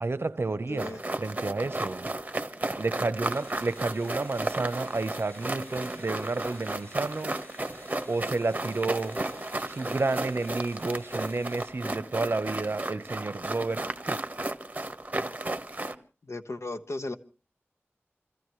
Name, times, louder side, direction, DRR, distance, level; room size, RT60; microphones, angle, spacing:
voice 1, 0.0-0.9 1.2-2.1 2.8-7.4 8.1-9.2 9.7-14.2, right 3 dB, 60° right, 0.8 m, -31 dB
voice 2, 0.7-1.0 16.2-17.2, left 2 dB, 80° left, 1.1 m, -35 dB
sound 1, 0.8-15.9, right 2 dB, 30° right, 1.4 m, -34 dB
sound 2, 3.3-11.7, left 1 dB, 40° left, 6.5 m, -52 dB
27.0 x 15.5 x 3.2 m
wide cardioid pair, 70°, 5 cm